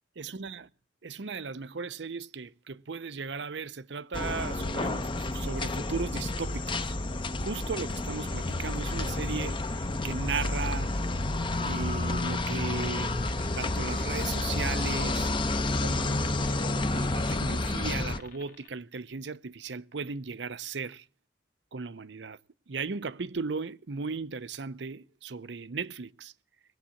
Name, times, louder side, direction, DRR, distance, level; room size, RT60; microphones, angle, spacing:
voice 1, 0.2-0.6 1.0-7.0 7.4-9.7 10.0-11.0 11.6-13.1 13.6-15.3 15.8-21.0 21.7-22.4 22.7-26.3, right 4 dB, 70° right, 0.7 m, -36 dB
sound 1, 4.1-18.2, left 2 dB, 25° left, 0.7 m, -30 dB
sound 2, 13.2-18.7, left 3 dB, 50° left, 1.4 m, -50 dB
20.5 x 8.6 x 7.1 m
head